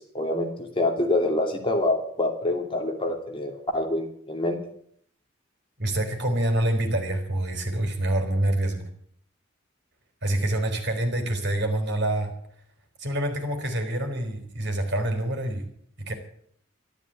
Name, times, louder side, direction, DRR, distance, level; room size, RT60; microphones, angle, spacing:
voice 1, 0.1-4.6, left 1 dB, 25° left, 2 dB, 2.6 m, -26 dB
voice 2, 5.8-8.9 10.2-12.3 13.0-15.7 16.0-16.1, right 1 dB, 60° right, 5 dB, 4.0 m, -26 dB
13.0 x 12.5 x 8.8 m, 0.64 s
head